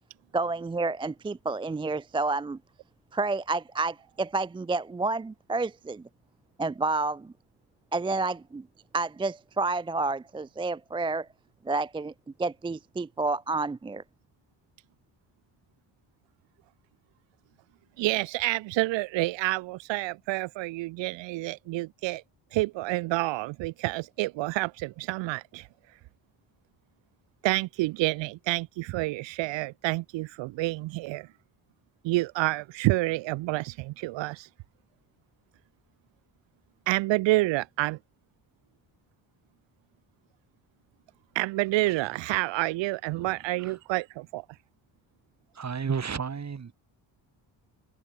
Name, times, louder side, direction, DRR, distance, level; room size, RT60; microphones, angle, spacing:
voice 1, 0.3-2.6 3.1-6.0 6.6-7.3 7.9-8.7 8.9-11.3 11.7-12.1 12.4-14.0, right 3 dB, 15° right, 0.3 m, -29 dB
voice 2, 18.0-22.2 22.5-25.7 27.4-31.3 32.0-34.5 36.9-38.0 41.3-44.4, right 20 dB, 90° right, 0.6 m, -28 dB
voice 3, 45.6-46.7, right 6 dB, 40° right, 7.0 m, -32 dB
cardioid pair, 115°, 43 cm